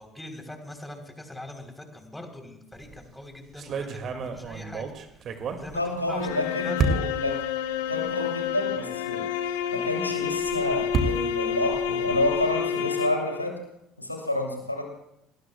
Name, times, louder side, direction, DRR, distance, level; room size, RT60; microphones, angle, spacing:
voice 1, 0.0-4.9 5.6-5.8 6.1-6.7, left 1 dB, 5° left, 4 dB, 3.7 m, -42 dB
sound 1, 2.7-3.0 3.6-6.3 6.8-7.3 8.1-8.2 8.5-8.6 10.2-12.6, right 4 dB, 45° right, 2.2 m, -31 dB
voice 2, 5.7-7.4 7.7-9.3 9.7-13.6 14.0-14.9, left 2 dB, 90° left, 2 dB, 2.7 m, -29 dB
sound 2, 6.2-13.5, left 8 dB, 65° left, 1.1 m, -29 dB
28.0 x 19.5 x 2.3 m, 0.79 s
figure-of-eight pair, 60°, 0 cm